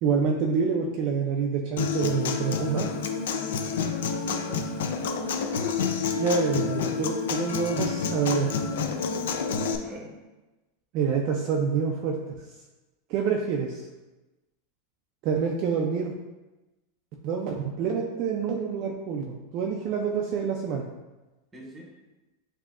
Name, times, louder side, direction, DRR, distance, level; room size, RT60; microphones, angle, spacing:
voice 1, 0.0-2.9 6.2-8.5 10.9-12.2 13.1-13.8 15.2-16.1 17.2-20.9, right 6 dB, 40° right, 1 dB, 0.4 m, -27 dB
Human voice / Acoustic guitar, 1.8-9.8, left 5 dB, 85° left, 0.4 m, -29 dB
voice 2, 3.7-4.9 5.4-5.8 6.3-6.4 9.8-10.1 21.5-21.9, left 1 dB, 10° right, -2 dB, 0.8 m, -43 dB
7.2 x 2.7 x 2.4 m, 1.1 s
supercardioid pair, 170°, 0 cm